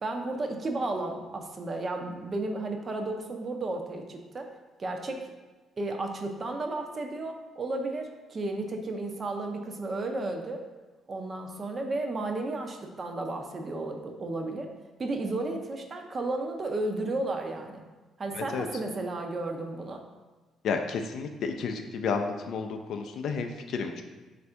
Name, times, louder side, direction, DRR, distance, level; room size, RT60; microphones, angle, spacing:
voice 1, 0.0-4.5 4.8-5.3 5.8-10.6 11.1-14.7 15.0-17.8 18.2-20.0, right 2 dB, 35° right, 4 dB, 0.5 m, -33 dB
voice 2, 18.3-18.7 20.6-24.0, left 5 dB, 70° left, 5 dB, 0.3 m, -31 dB
3.4 x 2.5 x 4.3 m, 1.2 s
cardioid pair, 100°, 0 cm